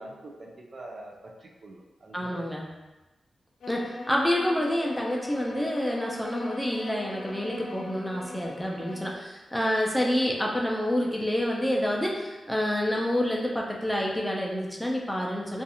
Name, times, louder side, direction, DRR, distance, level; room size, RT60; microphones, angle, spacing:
voice 1, 0.0-2.6, right 1 dB, 50° right, -1 dB, 0.5 m, -44 dB
voice 2, 2.1-2.7 3.7-15.6, left 1 dB, 5° left, -2 dB, 0.4 m, -28 dB
sound 1, 3.6-9.1, left 2 dB, 90° left, 0.4 m, -41 dB
2.4 x 2.4 x 2.8 m, 1.1 s
cardioid pair, 80°, 0 cm